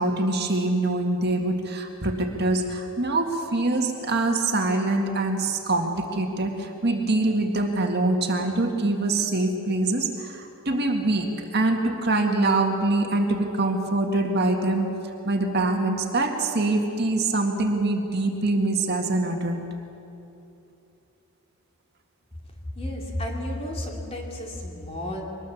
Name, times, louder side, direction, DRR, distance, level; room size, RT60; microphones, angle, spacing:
voice 1, 0.0-19.7, right 2 dB, 50° right, 3 dB, 1.9 m, -24 dB
voice 2, 22.7-25.2, left 1 dB, 30° left, 0 dB, 3.1 m, -32 dB
24.0 x 20.0 x 7.2 m, 2.9 s
head